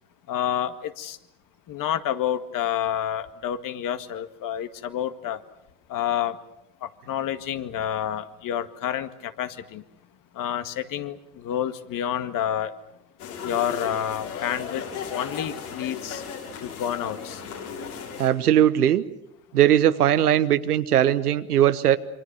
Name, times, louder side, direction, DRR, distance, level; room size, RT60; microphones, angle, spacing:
voice 1, 0.3-1.2 1.7-5.4 5.9-6.4 6.8-9.8 10.3-12.7 13.4-14.8 15.1-16.2 16.6-17.4, left 10 dB, 45° left, 10 dB, 1.9 m, -29 dB
sound 1, 13.2-18.3, left 6 dB, 80° left, 6.8 m, -36 dB
voice 2, 18.2-19.0 19.5-22.0, right 11 dB, 85° right, 12 dB, 1.2 m, -19 dB
27.5 x 25.0 x 7.0 m, 0.83 s
hypercardioid pair, 75°, 44 cm